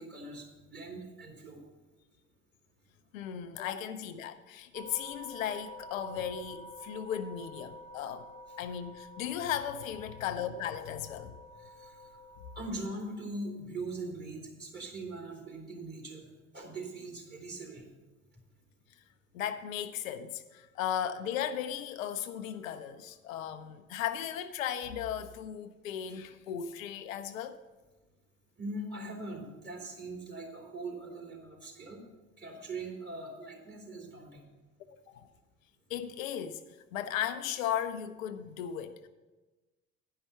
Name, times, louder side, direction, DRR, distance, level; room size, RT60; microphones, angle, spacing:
voice 1, 0.0-1.6 11.6-12.1 12.5-16.3 16.5-17.9 28.6-32.0 32.4-34.4, right 2 dB, 25° right, 3.1 m, -41 dB
voice 2, 3.1-8.3 8.6-11.4 19.3-27.6 35.1-35.3 35.9-36.6 36.9-39.1, left 9 dB, 80° left, 0.6 m, -36 dB
sound 1, 4.7-12.6, left 1 dB, 50° right, 2.9 m, -49 dB
10.0 x 5.6 x 6.8 m
hypercardioid pair, 60°, 40 cm